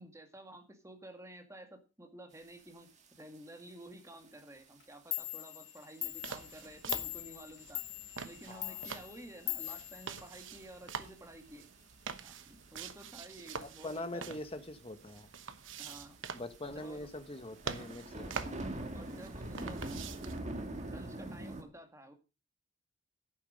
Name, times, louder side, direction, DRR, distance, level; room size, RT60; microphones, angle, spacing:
voice 1, 0.0-2.9 3.2-7.8 8.2-11.7 12.2-14.4 15.8-16.2 16.7-17.1 18.9-19.9 20.9-22.1, right 1 dB, 15° right, 5 dB, 2.0 m, -52 dB
sound 1, 3.0-3.1 3.3-3.7 4.4-4.6 5.2-5.3 5.9-6.0 6.3-6.4 6.6-6.7 7.8-8.1 8.5-8.6 9.5-9.6 10.2-10.6 11.0-11.1 11.6-12.3 13.4-13.7 14.0-14.1 14.3-14.4 14.6-14.7 15.4-15.5 15.8-15.9 16.5-21.6, right 1 dB, 35° right, 2.0 m, -42 dB
Clock, 4.8-4.9 5.1-10.8, left 20 dB, 60° left, 0.6 m, -41 dB
sound 2, 6.1-20.4, right 5 dB, 70° right, 1.0 m, -46 dB
voice 2, 8.5-8.8 13.6-15.3 16.3-18.7 19.6-19.7, left 2 dB, 30° left, 9 dB, 1.2 m, -43 dB
11.0 x 9.0 x 5.2 m, 0.31 s
head